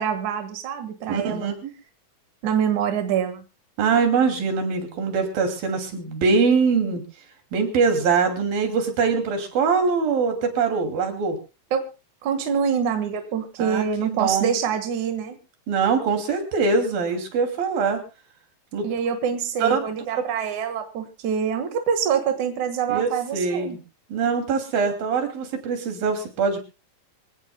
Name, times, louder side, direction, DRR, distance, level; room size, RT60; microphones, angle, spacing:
voice 1, 0.0-1.5 2.4-3.4 11.7-11.8 12.2-15.4 18.8-23.8, right 7 dB, 65° right, 7 dB, 2.8 m, -25 dB
voice 2, 1.1-1.6 3.8-7.0 7.5-11.4 13.6-14.5 15.7-18.0 18.7-18.9 19.6-19.8 22.9-23.8 24.1-26.6, right 5 dB, 90° right, 5 dB, 4.5 m, -23 dB
25.5 x 17.5 x 2.2 m, 0.30 s
omnidirectional pair, 4.0 m